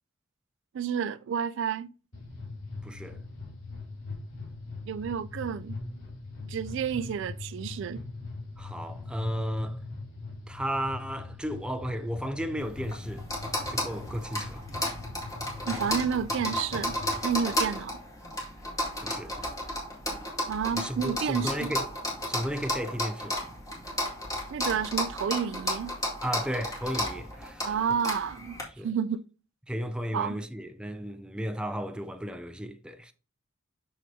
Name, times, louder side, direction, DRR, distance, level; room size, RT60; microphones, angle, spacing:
voice 1, 0.7-1.9 4.9-5.8 6.5-8.0 15.6-17.0 17.2-18.0 20.5-21.7 24.5-25.9 27.6-29.2 30.1-30.4, right 7 dB, 65° right, 0.3 m, -30 dB
sound 1, 2.1-17.3, left 3 dB, 90° left, 3.0 m, -41 dB
voice 2, 2.8-3.2 8.6-9.8 10.5-13.2 13.7-14.6 19.0-19.4 20.7-21.9 22.3-23.4 26.2-27.7 28.8-28.9 29.7-33.1, equal, 5° right, 0.5 m, -34 dB
sound 2, 12.6-28.6, left 1 dB, 15° left, 2.2 m, -33 dB
6.6 x 6.2 x 2.8 m
head